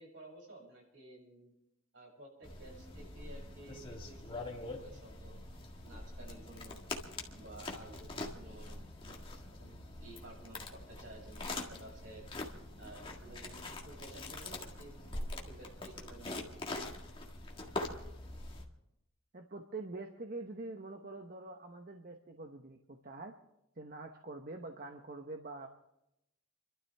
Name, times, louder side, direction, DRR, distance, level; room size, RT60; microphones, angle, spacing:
voice 1, 0.0-1.5 1.9-6.8 7.3-9.2 9.5-9.7 10.0-12.2 12.8-16.6, right 2 dB, 65° right, -1 dB, 7.3 m, -54 dB
sound 1, 2.4-18.6, left 2 dB, 25° left, 1.8 m, -44 dB
voice 2, 19.3-23.3 23.8-25.7, right 2 dB, 45° right, 4 dB, 1.0 m, -45 dB
29.0 x 12.5 x 3.5 m, 0.84 s
head